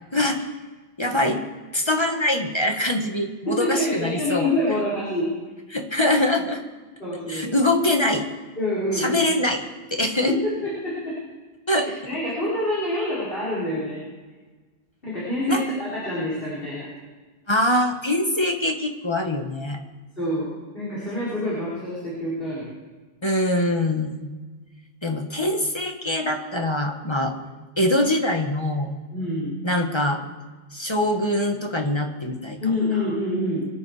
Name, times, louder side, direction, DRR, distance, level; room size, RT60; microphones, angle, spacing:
voice 1, 0.1-0.5 1.0-1.4 1.7-4.5 5.7-6.6 7.3-8.3 8.9-9.6 9.9-10.3 11.7-11.9 15.5-15.6 17.5-19.8 23.2-24.3 25.0-27.3 27.8-29.0 29.6-30.2 30.7-32.6, left 1 dB, 25° left, 3 dB, 1.6 m, -23 dB
voice 2, 3.6-5.3 7.0-7.6 8.6-9.3 10.3-11.2 11.8-14.0 15.0-16.9 20.2-22.7 29.1-29.6 32.6-33.7, left 1 dB, 55° left, -8 dB, 5.9 m, -26 dB
25.0 x 10.5 x 5.0 m, 1.3 s
omnidirectional pair, 1.1 m